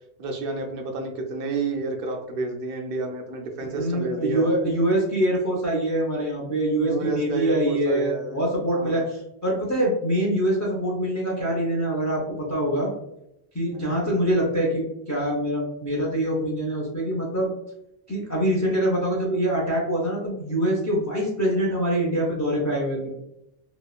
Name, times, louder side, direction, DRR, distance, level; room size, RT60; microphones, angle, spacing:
voice 1, 0.2-4.5 6.8-8.4 8.7-9.1 13.7-13.9, right 3 dB, 65° right, 3 dB, 0.7 m, -30 dB
voice 2, 3.7-12.9 13.5-17.5 18.1-23.1, right 1 dB, 25° left, -4 dB, 0.3 m, -24 dB
2.9 x 2.1 x 2.3 m, 0.85 s
omnidirectional pair, 1.0 m